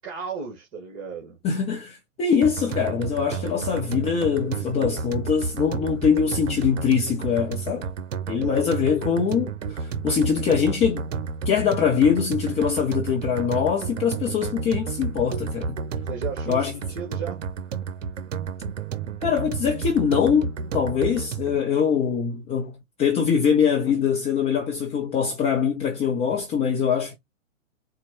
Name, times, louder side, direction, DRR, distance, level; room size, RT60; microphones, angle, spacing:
voice 1, 0.0-1.4 8.3-8.6 16.0-17.4, right 6 dB, 30° right, 1.6 m, -35 dB
voice 2, 1.4-7.9 8.3-11.0 11.5-15.8 16.5-16.7 19.2-27.2, left 7 dB, 15° left, 0.6 m, -23 dB
sound 1, 2.4-21.6, right 5 dB, 75° right, 0.7 m, -31 dB
4.3 x 2.3 x 4.3 m
hypercardioid pair, 120°, 38 cm